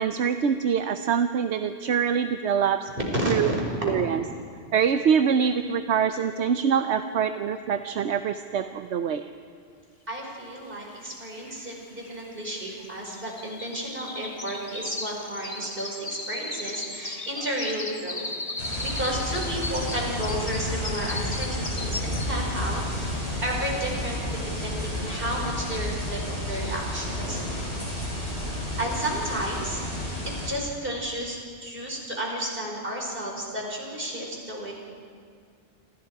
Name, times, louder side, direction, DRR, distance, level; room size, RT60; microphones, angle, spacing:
voice 1, 0.0-2.9 3.3-3.5 3.8-4.2 4.7-9.2, right 7 dB, 80° right, 8 dB, 1.0 m, -24 dB
voice 2, 3.1-4.1 10.1-18.3 18.6-27.6 28.8-29.8 30.2-34.7, equal, 55° right, -1 dB, 5.4 m, -32 dB
sound 1, 10.8-10.9 11.1-22.6 23.0-23.3 23.7-23.8, left 2 dB, 35° left, 1.6 m, -37 dB
sound 2, 18.6-30.5, left 1 dB, 75° left, 6.6 m, -31 dB
28.5 x 26.0 x 4.8 m, 2.1 s
omnidirectional pair, 1.1 m